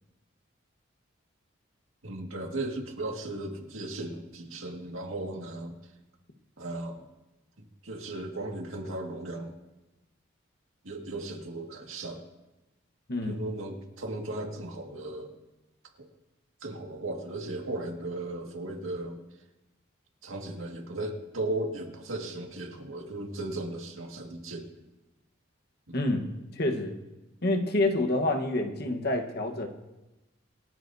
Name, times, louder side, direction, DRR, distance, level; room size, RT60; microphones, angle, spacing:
voice 1, 2.0-5.7 6.6-7.1 7.8-9.5 10.8-12.2 13.2-15.3 16.0-16.1 16.6-19.2 20.2-24.7 25.9-26.0, right 2 dB, 90° right, 2 dB, 1.9 m, -36 dB
voice 2, 13.1-13.4 25.9-26.3 26.5-27.0 27.4-29.7, left 2 dB, 50° left, 4 dB, 1.2 m, -27 dB
26.5 x 9.3 x 2.7 m, 1.0 s
head